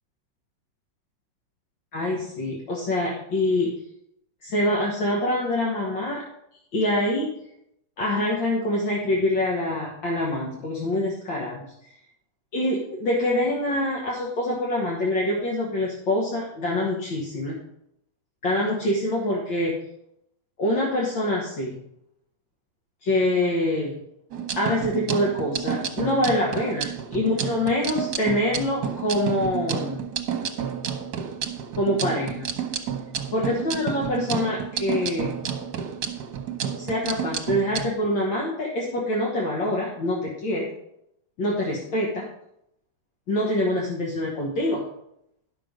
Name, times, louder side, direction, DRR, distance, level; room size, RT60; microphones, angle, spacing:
voice 1, 1.9-3.7 4.4-6.2 6.7-7.3 8.0-11.7 12.5-17.6 18.4-19.8 20.6-21.8 23.0-24.0 24.6-30.0 31.8-32.5 33.3-35.4 36.8-40.7 41.4-42.3 43.3-44.8, left 1 dB, 65° left, -3 dB, 2.1 m, -25 dB
sound 1, 24.3-37.9, right 8 dB, 60° right, 1.3 m, -30 dB
11.0 x 6.2 x 5.1 m, 0.78 s
omnidirectional pair, 2.2 m